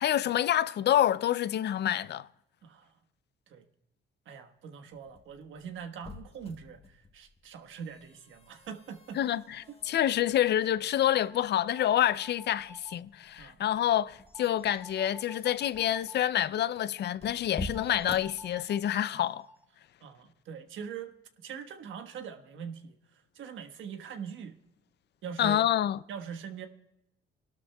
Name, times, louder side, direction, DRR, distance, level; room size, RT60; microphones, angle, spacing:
voice 1, 0.0-2.3 9.2-19.5 25.4-26.0, left 11 dB, 60° left, 0.5 m, -27 dB
voice 2, 4.2-9.2 9.7-9.8 13.4-13.6 20.0-21.1 21.4-24.5 25.2-25.7 26.1-26.7, right 7 dB, 75° right, 1.3 m, -42 dB
sound 1, 4.9-19.1, left 2 dB, 30° left, 1.4 m, -47 dB
sound 2, 11.0-13.0 14.3-16.3 17.7-19.6, equal, 10° right, 2.0 m, -51 dB
27.5 x 12.0 x 2.3 m
cardioid pair, 90°, 20 cm